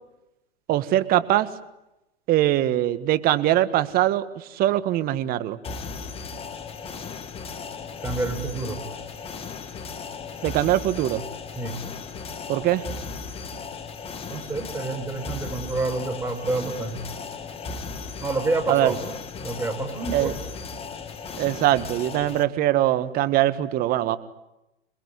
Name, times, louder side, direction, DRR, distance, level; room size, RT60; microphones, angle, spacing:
voice 1, 0.7-1.5 2.3-5.6 10.4-11.2 12.5-12.8 18.7-18.9 20.1-20.3 21.4-24.2, right 13 dB, 30° right, 12 dB, 1.7 m, -22 dB
sound 1, 5.6-22.4, left 5 dB, 20° left, 2.0 m, -36 dB
voice 2, 8.0-8.8 11.6-11.8 14.3-17.0 18.2-19.0 19.4-20.4, right 3 dB, 10° right, 4 dB, 4.4 m, -28 dB
27.5 x 20.5 x 9.8 m, 0.92 s
hypercardioid pair, 120°, 30 cm